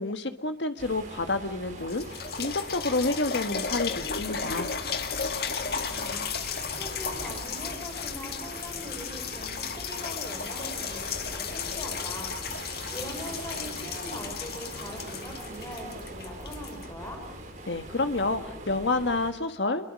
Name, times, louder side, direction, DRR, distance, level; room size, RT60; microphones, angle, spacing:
voice 1, 0.0-4.7 17.6-19.9, left 2 dB, 90° left, 8 dB, 1.5 m, -29 dB
sound 1, 0.8-19.3, right 2 dB, 45° right, 4.3 m, -42 dB
sound 2, 1.8-17.5 18.2-18.3, left 6 dB, 60° left, 2.0 m, -35 dB
voice 2, 5.5-12.3 12.9-17.2, left 1 dB, 15° left, 3 dB, 5.1 m, -42 dB
30.0 x 22.5 x 6.3 m, 0.69 s
head